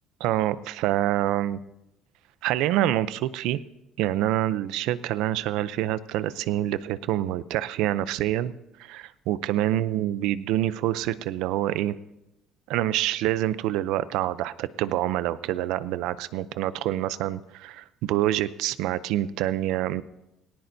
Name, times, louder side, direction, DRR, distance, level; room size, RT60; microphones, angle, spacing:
voice 1, 0.2-1.6 2.4-3.6 4.0-8.5 8.8-11.9 12.7-20.0, right 13 dB, 85° right, 16 dB, 0.6 m, -26 dB
18.0 x 18.0 x 2.7 m, 0.90 s
cardioid pair, 135°, 0 cm